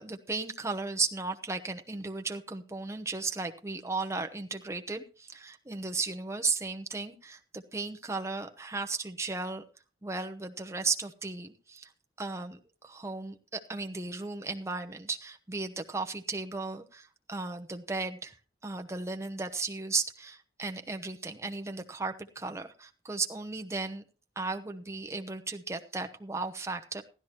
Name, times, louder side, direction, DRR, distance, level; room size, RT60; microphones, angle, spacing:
voice 1, 0.0-9.6 10.0-11.9 12.2-18.3 18.6-24.0 24.4-27.0, right 3 dB, 15° right, 5 dB, 0.9 m, -35 dB
15.0 x 12.5 x 2.9 m, 0.33 s
head